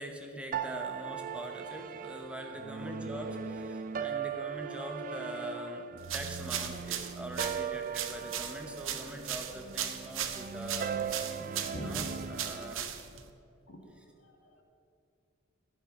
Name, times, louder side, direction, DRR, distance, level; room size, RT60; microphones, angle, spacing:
voice 1, 0.0-3.3 3.7-10.9 11.8-12.9, equal, 5° right, 3 dB, 0.8 m, -43 dB
sound 1, 0.5-12.7, right 7 dB, 40° right, 0.4 m, -39 dB
voice 2, 3.0-3.4 8.2-8.3 11.4-12.1 13.7-13.8 14.2-14.6, equal, 75° left, 2 dB, 1.7 m, -44 dB
sound 2, 6.0-13.3, right 9 dB, 70° right, 0.7 m, -38 dB
11.0 x 7.7 x 5.3 m, 2.6 s
head